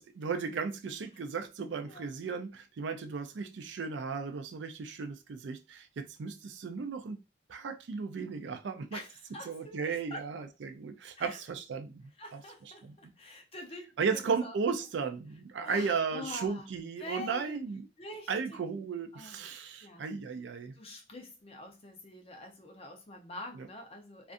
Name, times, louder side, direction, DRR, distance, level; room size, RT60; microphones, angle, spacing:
voice 1, 0.0-7.2 7.5-9.0 9.4-12.9 14.0-17.9 18.3-20.7 23.5-23.7, right 5 dB, 65° right, 0.4 m, -35 dB
voice 2, 8.9-10.3 11.2-11.4 12.2-14.5 15.7-16.6 17.0-17.6 18.0-18.6 19.1-19.5 19.8-20.1 20.7-24.3, left 1 dB, 30° left, 0.6 m, -46 dB
2.5 x 2.4 x 2.4 m
head